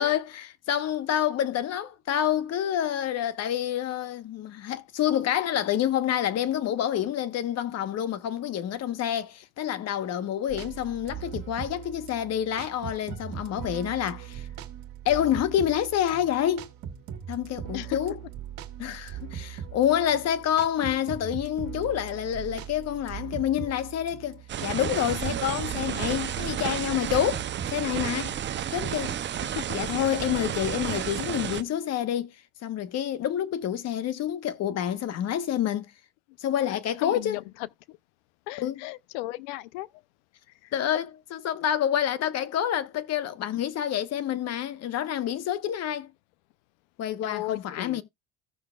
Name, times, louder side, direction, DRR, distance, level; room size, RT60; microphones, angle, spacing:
voice 1, 0.0-14.5 15.0-16.7 17.3-18.2 18.8-28.3 28.7-29.2 29.7-32.3 32.6-35.9 36.4-37.4 38.6-38.8 40.7-46.1 47.0-48.0, left 10 dB, 45° left, 1.1 m, -28 dB
sound 1, 10.5-29.1, right 9 dB, 55° right, 1.7 m, -40 dB
sound 2, 24.5-31.6, right 10 dB, 30° right, 0.7 m, -32 dB
voice 2, 37.0-37.4 38.5-39.9 47.2-48.0, left 19 dB, 80° left, 0.6 m, -35 dB
15.5 x 6.4 x 2.3 m
supercardioid pair, 100°, 35 cm